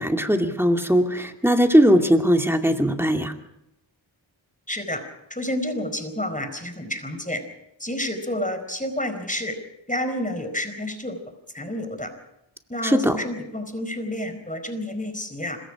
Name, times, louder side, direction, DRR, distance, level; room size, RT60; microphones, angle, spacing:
voice 1, 0.0-3.3 12.8-13.2, equal, 5° right, 4 dB, 2.4 m, -19 dB
voice 2, 4.7-5.0 5.3-7.4 7.8-9.6 9.9-11.2 11.5-12.1 12.7-15.6, left 1 dB, 15° left, 7 dB, 4.5 m, -29 dB
26.0 x 22.0 x 5.0 m, 0.84 s
wide cardioid pair, 55°, 48 cm